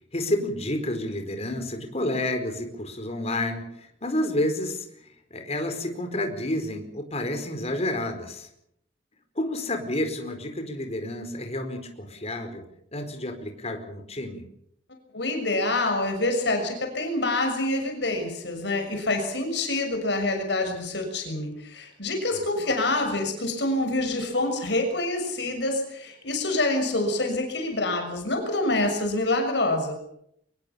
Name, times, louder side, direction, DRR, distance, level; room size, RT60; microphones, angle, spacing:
voice 1, 0.1-8.5 9.3-12.6 12.9-14.4 22.3-22.4, left 1 dB, 35° left, 6 dB, 4.6 m, -30 dB
voice 2, 15.1-29.9, left 2 dB, 65° left, 4 dB, 6.5 m, -26 dB
24.5 x 21.5 x 7.0 m, 0.73 s
head